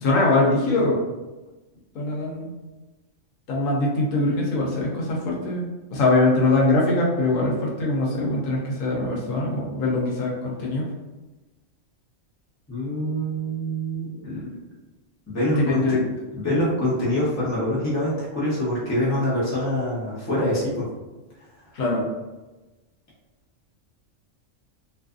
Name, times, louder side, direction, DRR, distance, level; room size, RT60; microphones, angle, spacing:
voice 1, 0.0-1.0 1.9-2.5 3.5-10.3 10.6-10.9 15.6-16.0 21.7-22.1, left 2 dB, 85° left, -2 dB, 1.1 m, -22 dB
voice 2, 12.7-14.5 15.3-15.8 16.3-20.8, equal, 15° left, -8 dB, 0.7 m, -25 dB
2.6 x 2.3 x 2.4 m, 1.1 s
omnidirectional pair, 1.3 m